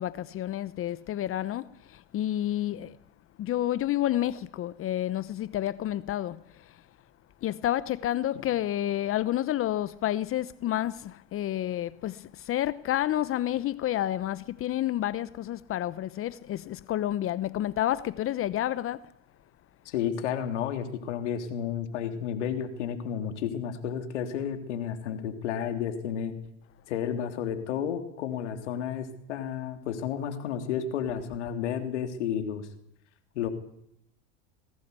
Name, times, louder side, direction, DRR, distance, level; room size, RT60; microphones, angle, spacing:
voice 1, 0.0-3.0 3.4-6.8 7.4-19.1, left 13 dB, 40° left, 0.9 m, -30 dB
voice 2, 19.9-26.3 26.9-32.7 33.4-33.5, left 8 dB, 80° left, 3.5 m, -32 dB
21.0 x 18.0 x 8.3 m
hypercardioid pair, 100°, 34 cm